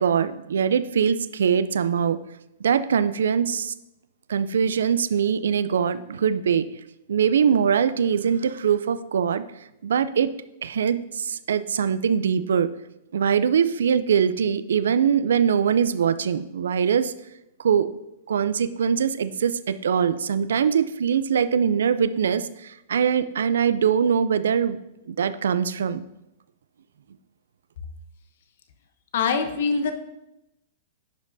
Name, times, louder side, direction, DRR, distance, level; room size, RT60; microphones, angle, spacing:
voice 1, 0.0-2.2 2.6-3.7 4.3-6.7 7.1-9.4 9.8-10.3 10.6-12.7 13.1-17.1 17.6-17.9 18.3-24.8 25.1-26.0, right 7 dB, 85° right, 14 dB, 0.3 m, -22 dB
voice 2, 29.1-29.9, left 5 dB, 70° left, 8 dB, 0.8 m, -23 dB
10.5 x 5.2 x 2.6 m, 0.89 s
hypercardioid pair, 130°, 0 cm